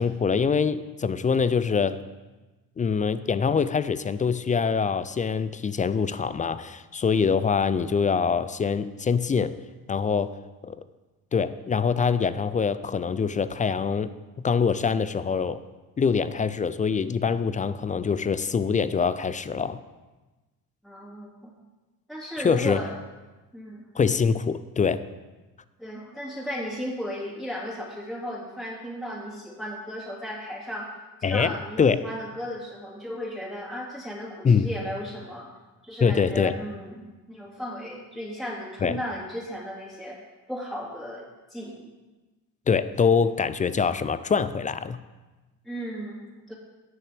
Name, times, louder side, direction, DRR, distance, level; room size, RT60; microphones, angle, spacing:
voice 1, 0.0-2.0 2.8-9.6 9.9-10.4 10.6-10.8 11.3-14.1 14.4-15.7 16.0-19.8 22.4-22.9 24.0-25.1 31.2-32.0 34.4-34.7 36.0-36.6 38.8-39.0 42.7-45.0, left 6 dB, 20° left, 14 dB, 0.3 m, -24 dB
voice 2, 20.8-21.5 22.1-22.9 23.5-23.8 25.8-30.9 31.2-35.5 35.8-40.2 40.5-41.9 45.6-46.6, equal, ahead, -4 dB, 2.3 m, -35 dB
17.5 x 6.5 x 3.5 m, 1.2 s
hypercardioid pair, 55°, 46 cm